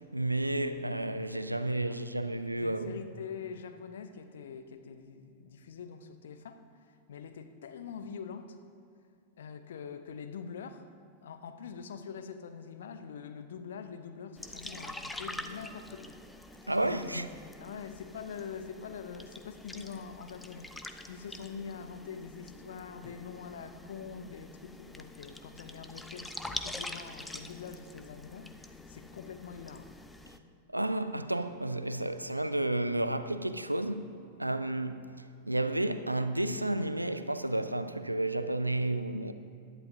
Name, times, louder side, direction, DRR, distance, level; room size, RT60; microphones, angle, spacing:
voice 1, 0.1-2.9 16.7-17.3 30.7-35.1 35.5-39.3, right 1 dB, 85° right, 0.5 m, -31 dB
voice 2, 1.5-2.2 2.6-8.6 9.4-10.9 11.2-16.2 16.6-17.3 17.6-29.9, left 6 dB, 60° left, 0.8 m, -44 dB
sound 1, 14.4-30.4, left 2 dB, 5° left, 0.6 m, -45 dB
17.0 x 11.5 x 2.8 m
figure-of-eight pair, 90°, 0 cm